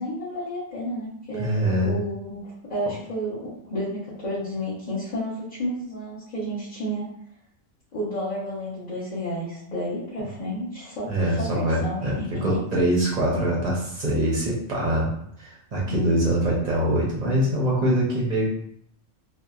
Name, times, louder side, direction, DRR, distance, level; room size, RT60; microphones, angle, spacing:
voice 1, 0.0-7.1 7.9-12.4 15.8-16.1, equal, 45° left, -10 dB, 0.8 m, -31 dB
voice 2, 1.4-2.0 2.9-3.0 11.1-15.1 15.4-18.5, right 1 dB, 45° right, -5 dB, 0.6 m, -23 dB
2.7 x 2.1 x 2.3 m, 0.70 s
omnidirectional pair, 1.2 m